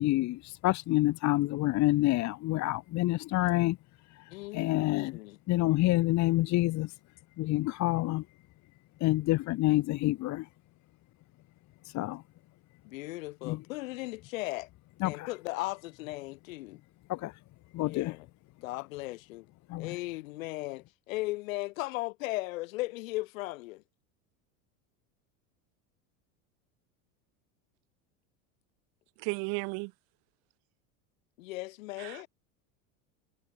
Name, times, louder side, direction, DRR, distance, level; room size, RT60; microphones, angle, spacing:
voice 1, 0.0-3.8 4.1-5.2 5.5-6.9 7.4-8.2 9.0-10.5 11.8-12.2 13.4-13.6 15.0-15.3 17.1-17.4 17.7-18.2 19.7-19.9, left 18 dB, 45° left, 1.1 m, -28 dB
voice 2, 4.3-5.4 12.8-14.7 15.0-16.8 17.8-18.3 18.6-19.5 19.8-23.8 31.4-32.3, left 20 dB, 80° left, 6.7 m, -37 dB
voice 3, 29.2-29.9 32.0-32.2, right 35 dB, 65° right, 1.5 m, -34 dB
supercardioid pair, 120°, 39 cm